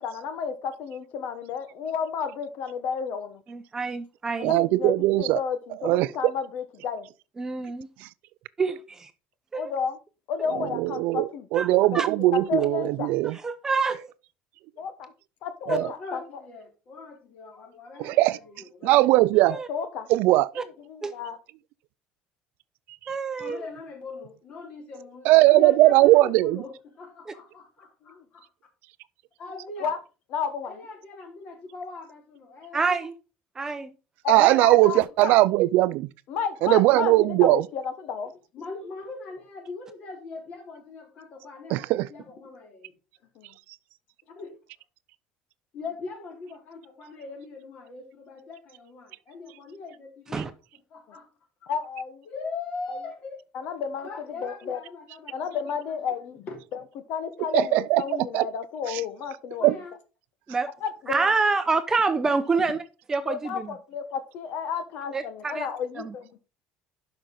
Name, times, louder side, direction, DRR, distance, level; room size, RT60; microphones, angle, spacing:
voice 1, 0.0-3.4 4.4-7.1 9.5-10.0 10.3-11.5 12.3-13.1 14.8-15.1 15.4-16.2 19.5-20.1 20.6-21.4 28.1-28.2 29.8-30.0 30.3-30.8 34.2-35.3 36.3-38.3 43.4-43.5 51.1-51.2 51.7-52.3 52.9-53.0 53.5-54.1 54.4-54.8 55.3-56.5 56.7-56.8 57.1-59.8 60.8-61.3 63.2-66.4, left 6 dB, 60° left, 1.2 m, -32 dB
voice 2, 3.5-4.5 7.4-7.9 8.6-9.1 9.5-9.7 11.5-11.7 11.9-12.1 13.4-14.1 15.7-15.8 19.5-19.7 20.6-20.7 21.0-21.1 23.1-23.7 27.3-27.4 32.7-33.1 33.6-33.9 34.4-34.6 50.3-50.5 60.5-60.7 61.1-62.8 63.1-63.7 65.1-65.7 66.0-66.1, right 4 dB, 15° right, 0.7 m, -27 dB
voice 3, 4.4-5.4 5.8-6.1 10.6-13.4 15.7-15.8 18.0-18.4 18.8-19.6 20.1-20.5 25.3-26.6 34.3-36.1 36.6-37.6 41.7-42.1 50.4-50.5 57.5-58.5 58.9-59.0 59.6-59.8, right 18 dB, 70° right, 0.4 m, -20 dB
voice 4, 15.8-19.3 23.4-28.5 29.4-29.9 30.7-33.1 34.5-35.0 38.5-42.9 44.4-44.5 45.7-50.4 50.9-51.3 51.6-51.7 52.3-53.4 54.0-55.5 56.5-56.6 59.6-59.9, left 3 dB, 45° left, 3.6 m, -41 dB
11.5 x 5.7 x 3.8 m
cardioid pair, 155°, 3 cm